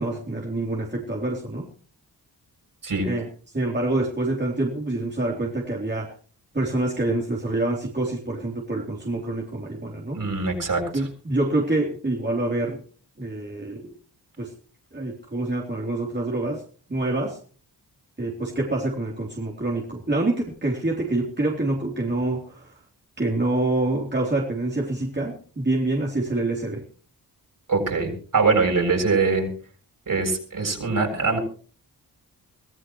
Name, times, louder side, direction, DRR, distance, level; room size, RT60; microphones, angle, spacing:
voice 1, 0.0-1.7 3.0-3.3 3.5-6.1 6.5-10.2 10.9-12.8 13.2-13.9 14.4-14.5 14.9-16.6 16.9-17.4 18.2-22.7 23.2-26.8, right 2 dB, 25° right, -1 dB, 3.5 m, -26 dB
voice 2, 10.1-10.8 27.7-29.5 30.1-31.4, right 4 dB, 50° right, 1 dB, 7.6 m, -23 dB
24.0 x 15.5 x 3.2 m, 0.43 s
cardioid pair, 50°, 40 cm